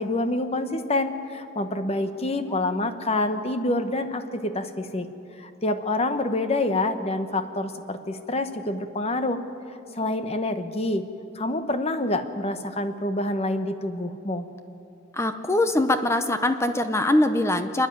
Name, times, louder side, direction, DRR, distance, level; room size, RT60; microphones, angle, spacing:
voice 1, 0.0-5.1 5.4-9.4 10.0-11.0 11.3-14.4, left 2 dB, 30° left, 9 dB, 1.0 m, -27 dB
voice 2, 15.1-17.9, left 1 dB, 15° left, 9 dB, 0.7 m, -22 dB
28.0 x 10.0 x 9.2 m, 2.8 s
head